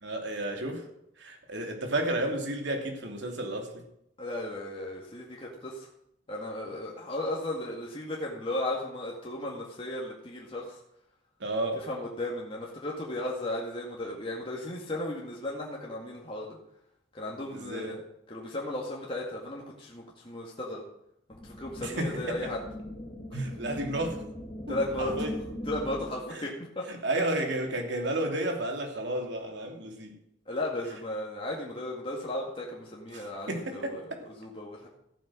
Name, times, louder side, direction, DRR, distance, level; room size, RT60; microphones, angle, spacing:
voice 1, 0.0-0.8 1.2-3.8 11.4-11.8 17.5-18.0 21.8-22.5 23.3-24.2 24.7-25.4 26.3-26.5 26.9-30.1 33.1-34.2, right 1 dB, 65° right, 2.9 m, -32 dB
voice 2, 4.2-5.9 6.3-10.8 11.7-16.6 17.1-18.0 18.3-20.8 21.4-22.6 23.3-23.5 24.7-25.2 25.7-26.8 30.5-34.9, left 1 dB, 30° left, 2.1 m, -35 dB
sound 1, 21.3-26.3, left 1 dB, 10° left, 1.9 m, -40 dB
14.5 x 9.3 x 6.3 m
head